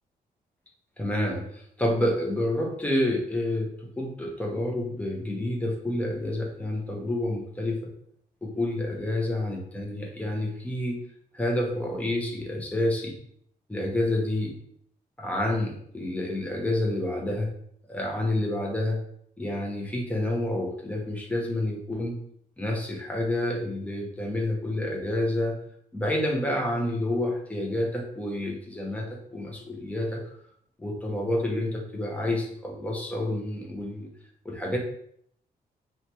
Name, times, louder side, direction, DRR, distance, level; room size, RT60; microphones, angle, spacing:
voice 1, 1.0-7.9 8.4-11.0 11.3-13.2 13.7-14.5 15.2-17.5 17.9-19.0 19.4-22.2 22.6-25.6 25.9-30.2 30.8-34.1 34.4-34.8, left 1 dB, 10° left, 0 dB, 0.6 m, -29 dB
2.9 x 2.2 x 2.7 m, 0.68 s
cardioid pair, 110°, 16 cm